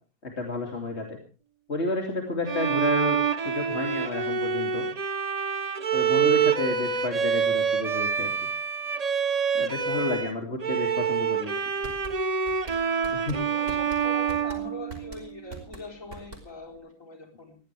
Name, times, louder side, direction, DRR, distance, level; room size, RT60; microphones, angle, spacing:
voice 1, 0.2-1.2 1.7-4.9 5.9-8.5 9.5-11.5 13.1-13.4, left 2 dB, 50° left, 1 dB, 3.2 m, -31 dB
Bowed string instrument, 2.5-10.3 10.6-15.4, right 7 dB, 30° right, 0.9 m, -26 dB
voice 2, 9.7-10.1 13.1-17.6, left 1 dB, 65° left, 2 dB, 4.8 m, -43 dB
sound 1, 11.6-16.8, right 2 dB, 55° right, 5.4 m, -43 dB
21.0 x 16.5 x 3.4 m, 0.36 s
omnidirectional pair, 1.5 m